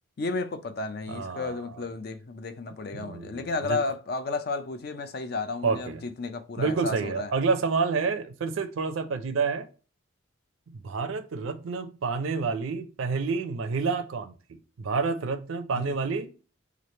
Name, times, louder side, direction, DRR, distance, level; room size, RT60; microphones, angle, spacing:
voice 1, 0.2-7.3 15.9-16.0, left 3 dB, 50° left, 0.4 m, -32 dB
voice 2, 1.1-1.8 2.9-3.8 5.6-6.0 6.6-9.7 10.7-16.3, right 4 dB, 75° right, 0.4 m, -29 dB
3.2 x 2.4 x 4.1 m
head